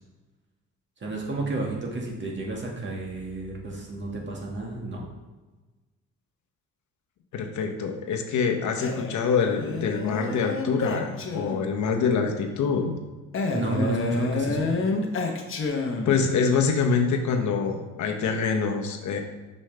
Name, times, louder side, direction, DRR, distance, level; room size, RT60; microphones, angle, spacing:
voice 1, 1.0-5.0 13.5-14.7, right 2 dB, 40° right, -1 dB, 1.8 m, -31 dB
voice 2, 7.3-12.9 16.0-19.2, left 5 dB, 75° left, 3 dB, 1.0 m, -25 dB
Male speech man speaking, 8.8-11.8 13.3-16.3, left 3 dB, 45° left, 1.0 m, -29 dB
6.4 x 5.4 x 3.3 m, 1.2 s
cardioid pair, 90°, 30 cm